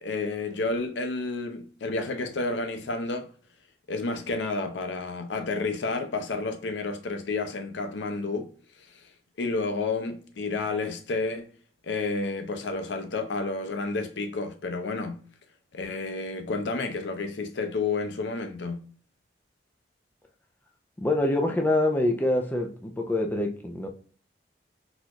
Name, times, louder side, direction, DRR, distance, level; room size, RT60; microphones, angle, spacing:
voice 1, 0.0-3.3 3.9-8.5 8.9-9.1 9.4-11.5 11.8-15.2 15.7-18.9, left 3 dB, 90° left, 0.6 m, -30 dB
voice 2, 21.0-23.9, left 1 dB, 10° left, 0.4 m, -25 dB
4.1 x 2.4 x 2.9 m
head